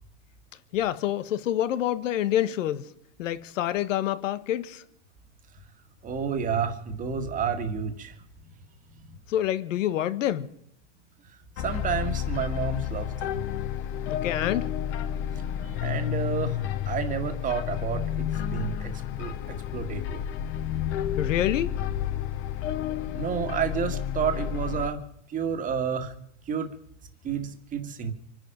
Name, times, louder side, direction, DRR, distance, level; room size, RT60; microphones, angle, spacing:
voice 1, 0.7-2.9 3.2-4.8 9.3-10.5 14.1-14.7 21.2-21.8, left 12 dB, 75° left, 1.4 m, -27 dB
voice 2, 6.0-8.2 9.1-9.2 11.6-13.4 15.6-20.2 23.1-25.0 25.3-26.1 26.5-26.7 27.2-28.1, right 6 dB, 20° right, 1.8 m, -30 dB
sound 1, 11.6-24.9, left 10 dB, 35° left, 0.8 m, -31 dB
26.0 x 10.5 x 5.1 m
supercardioid pair, 145°, 38 cm